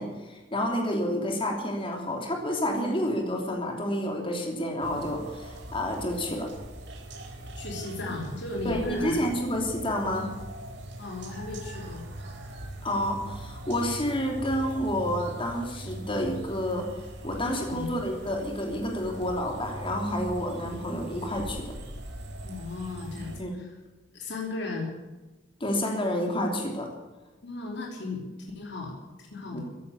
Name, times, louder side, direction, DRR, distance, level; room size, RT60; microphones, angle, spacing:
voice 1, 0.0-6.5 8.6-10.3 12.8-16.9 17.2-21.8 23.4-23.5 25.6-26.9 29.5-29.6, equal, 30° left, 1 dB, 3.0 m, -29 dB
sound 1, 4.8-23.4, right 1 dB, 70° right, 3.6 m, -41 dB
voice 2, 7.6-9.2 11.0-12.1 17.7-18.0 22.4-23.7 24.1-24.9 27.4-28.2 28.5-29.6, left 3 dB, 65° left, 0 dB, 3.3 m, -36 dB
15.5 x 11.0 x 8.3 m, 1.1 s
head